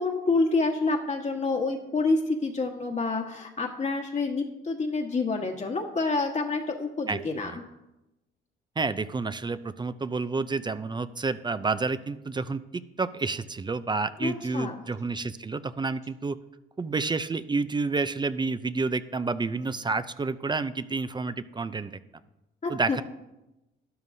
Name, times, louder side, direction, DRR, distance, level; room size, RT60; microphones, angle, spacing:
voice 1, 0.0-7.6 14.2-14.7 22.6-23.0, left 3 dB, 35° left, 1 dB, 1.3 m, -28 dB
voice 2, 7.1-7.6 8.8-12.6 13.0-16.4 16.8-21.9 22.7-23.0, right 3 dB, 20° right, 13 dB, 0.5 m, -29 dB
12.5 x 10.5 x 2.7 m, 0.94 s
cardioid pair, 80°, 21 cm